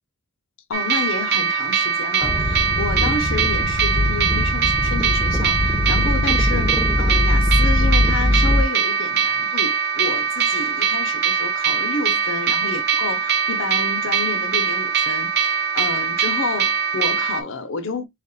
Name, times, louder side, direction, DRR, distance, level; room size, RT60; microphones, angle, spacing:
voice 1, 0.7-18.1, left 4 dB, 55° left, 0.6 m, -30 dB
sound 1, 0.7-17.4, right 7 dB, 45° right, 0.7 m, -22 dB
sound 2, 2.2-8.6, left 1 dB, 5° left, 0.7 m, -21 dB
3.5 x 2.3 x 4.0 m
head